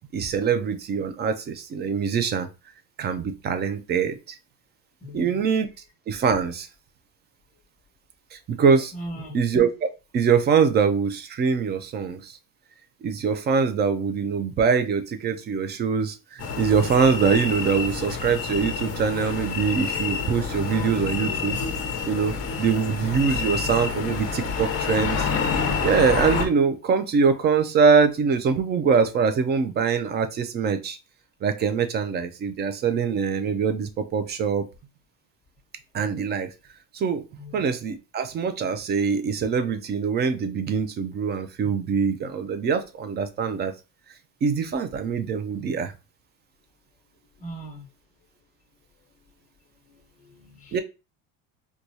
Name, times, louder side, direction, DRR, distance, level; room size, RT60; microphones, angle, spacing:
voice 1, 0.1-2.5 3.0-4.4 5.1-5.7 6.1-6.7 8.5-8.9 9.3-12.3 13.0-21.6 22.1-25.3 25.8-31.0 31.4-34.6 35.9-36.5 36.9-37.2 37.5-43.7 44.4-45.9 50.7-50.8, right 6 dB, 30° right, 9 dB, 0.3 m, -23 dB
voice 2, 5.0-5.4 8.9-9.4 37.4-37.6 47.4-47.9 49.8-50.8, right 1 dB, 20° left, 1 dB, 1.3 m, -39 dB
sound 1, 16.4-26.5, left 5 dB, 40° left, 0.7 m, -28 dB
4.5 x 2.3 x 2.6 m, 0.29 s
cardioid pair, 140°, 37 cm